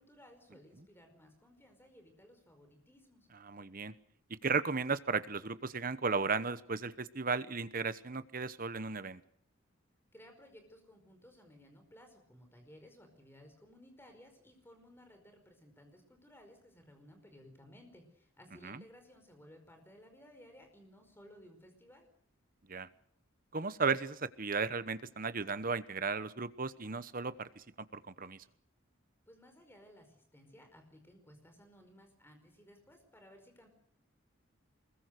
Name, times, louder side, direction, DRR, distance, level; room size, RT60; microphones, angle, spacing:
voice 1, 0.0-3.3 10.1-22.1 29.3-33.7, equal, 10° left, 5 dB, 5.0 m, -58 dB
voice 2, 3.4-3.9 4.3-9.2 18.6-18.8 22.7-22.9 23.5-27.6 27.9-28.4, right 4 dB, 45° right, 13 dB, 1.0 m, -35 dB
24.0 x 21.5 x 6.7 m, 0.63 s
head